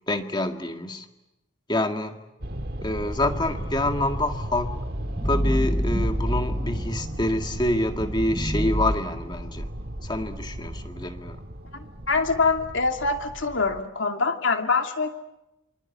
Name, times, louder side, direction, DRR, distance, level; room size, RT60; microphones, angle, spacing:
voice 1, 0.1-1.1 1.7-2.2 2.8-4.8 5.2-9.7 10.0-11.4, left 1 dB, 20° left, 6 dB, 1.8 m, -27 dB
sound 1, 2.4-13.8, right 1 dB, 50° right, 1.7 m, -35 dB
sound 2, 3.2-7.5 8.0-9.0, equal, 5° right, 1.5 m, -28 dB
voice 2, 11.7-15.1, left 4 dB, 70° left, 5 dB, 2.5 m, -24 dB
27.0 x 25.0 x 8.5 m, 0.97 s
head